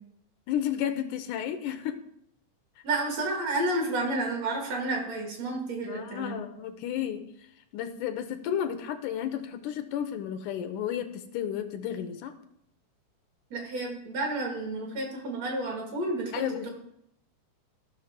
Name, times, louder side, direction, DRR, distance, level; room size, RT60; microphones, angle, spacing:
voice 1, 0.5-2.0 5.8-7.2 7.7-12.3 16.3-16.7, left 10 dB, 85° left, 9 dB, 2.2 m, -32 dB
voice 2, 2.8-6.3 13.5-16.7, right 2 dB, 55° right, 0 dB, 3.0 m, -31 dB
15.0 x 6.3 x 3.7 m, 0.75 s
omnidirectional pair, 3.7 m